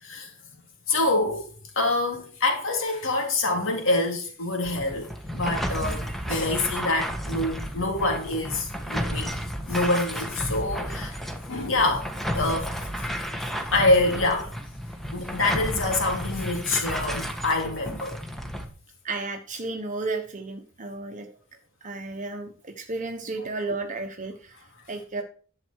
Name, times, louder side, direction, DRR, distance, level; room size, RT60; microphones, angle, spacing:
voice 1, 0.0-0.3 0.9-1.5 1.8-9.4 9.7-11.2 11.5-12.7 13.7-14.5 15.1-18.2, left 2 dB, 65° left, 3.7 m, -26 dB
sound 1, 4.7-18.7, equal, ahead, 1.5 m, -32 dB
voice 2, 19.0-21.3 21.8-24.5 24.9-25.2, right 3 dB, 35° right, 1.2 m, -33 dB
11.5 x 7.6 x 4.7 m
head